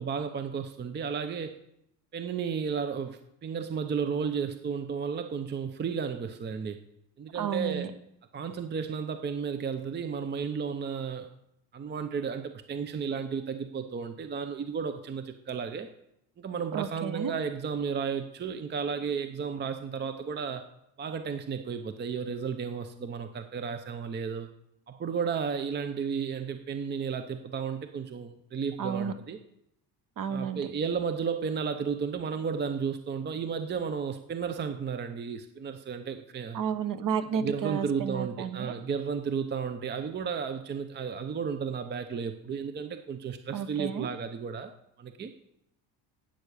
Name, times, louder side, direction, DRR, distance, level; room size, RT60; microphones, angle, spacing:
voice 1, 0.0-1.6 2.1-6.8 7.2-7.9 8.3-11.3 11.7-15.9 16.4-20.7 21.0-24.5 24.9-29.4 30.3-36.6 37.3-44.7 45.0-45.3, right 6 dB, 25° right, 9 dB, 0.6 m, -33 dB
voice 2, 7.3-7.9 16.7-17.3 28.8-29.1 30.2-30.6 36.5-38.7 43.5-44.1, right 7 dB, 45° right, 12 dB, 1.1 m, -32 dB
12.0 x 9.1 x 6.8 m, 0.80 s
cardioid pair, 140°, 44 cm